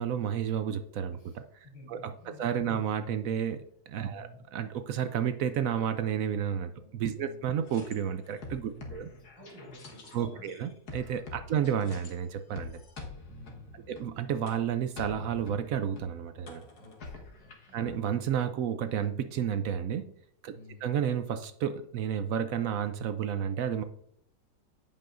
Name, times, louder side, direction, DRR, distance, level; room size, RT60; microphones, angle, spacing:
voice 1, 0.0-1.4 1.9-2.1 2.4-9.1 10.1-12.8 13.9-16.6 17.7-20.1 20.4-20.5 20.8-23.8, right 8 dB, 75° right, 9 dB, 0.8 m, -31 dB
voice 2, 1.7-2.8 4.0-4.5 6.8-6.9 7.2-7.4 8.7-10.5 13.2-13.9 16.7-17.8 20.5-20.9, equal, 80° left, -4 dB, 4.6 m, -52 dB
sound 1, 7.6-12.1 12.6-18.0, left 3 dB, 60° left, 1.8 m, -46 dB
15.5 x 5.4 x 2.5 m, 0.71 s
omnidirectional pair, 2.0 m